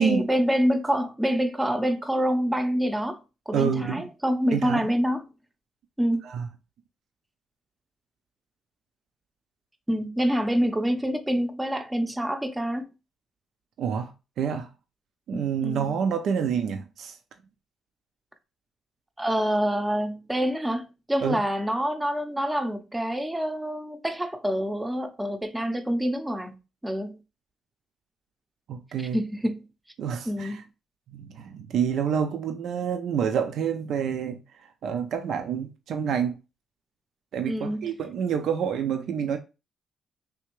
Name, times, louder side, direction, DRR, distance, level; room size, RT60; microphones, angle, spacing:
voice 1, 0.0-3.2 3.5-5.2 6.0-6.3 9.9-12.9 15.3-15.9 19.2-26.5 26.8-27.2 29.1-29.6 30.3-30.6 37.5-37.9, equal, 10° right, 0.6 m, -26 dB
voice 2, 3.5-4.1 4.5-4.8 6.2-6.5 13.8-14.7 15.3-17.2 21.2-21.4 28.7-29.2 30.0-30.6 31.1-34.4 34.8-36.4 37.3-39.4, right 7 dB, 70° right, 0.4 m, -28 dB
3.4 x 2.8 x 3.0 m
cardioid pair, 90°, 0 cm